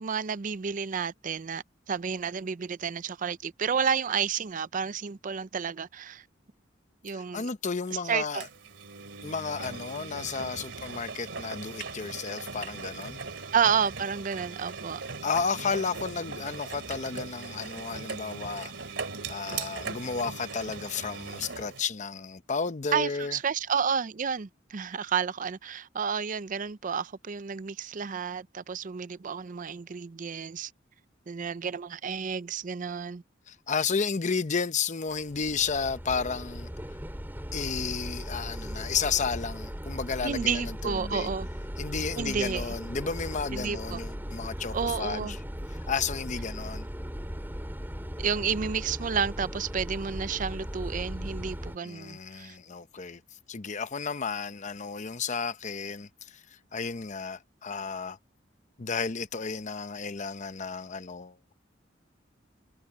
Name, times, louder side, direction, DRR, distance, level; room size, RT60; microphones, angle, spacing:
voice 1, 0.0-6.2 7.0-7.5 8.1-8.4 13.5-15.0 22.9-30.7 31.3-33.2 40.2-41.5 42.2-42.7 43.5-44.0 44.7-45.4 48.2-52.6, right 6 dB, 45° right, 0.5 m, -31 dB
voice 2, 7.1-8.5 9.2-13.2 15.2-18.7 19.3-23.4 33.5-36.7 37.5-41.3 41.8-45.4 45.9-46.9 51.8-53.2 53.5-56.4 56.7-58.2 58.8-61.4, left 5 dB, 40° left, 0.7 m, -32 dB
Engine, 8.4-21.8, right 4 dB, 70° right, 3.1 m, -39 dB
sound 1, 35.1-51.8, equal, 10° right, 4.1 m, -37 dB
head